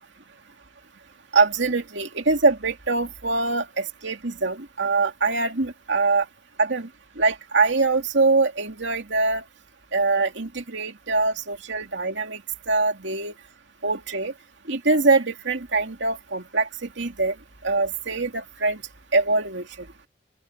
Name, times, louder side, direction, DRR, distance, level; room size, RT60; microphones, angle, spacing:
voice 1, 1.3-6.3 6.6-6.9 7.2-9.4 9.9-12.4 12.7-13.3 13.8-14.3 14.7-17.4 17.6-18.8 19.1-19.7, right 3 dB, 80° right, 2.5 m, -23 dB
open air
head